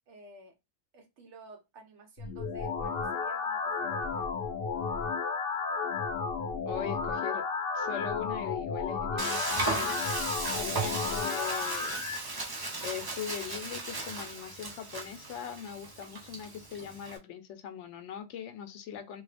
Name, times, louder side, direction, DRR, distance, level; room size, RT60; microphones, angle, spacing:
voice 1, 0.1-0.5 0.9-4.3, right 3 dB, 75° right, 1.2 m, -51 dB
sound 1, 2.2-12.2, left 5 dB, 60° left, 0.7 m, -33 dB
voice 2, 6.7-7.4 7.7-10.0 10.6-12.0 12.8-19.2, left 8 dB, 90° left, 0.9 m, -40 dB
Frying (food), 9.2-17.2, right 3 dB, 30° right, 0.5 m, -36 dB
3.1 x 2.3 x 3.3 m
omnidirectional pair, 1.2 m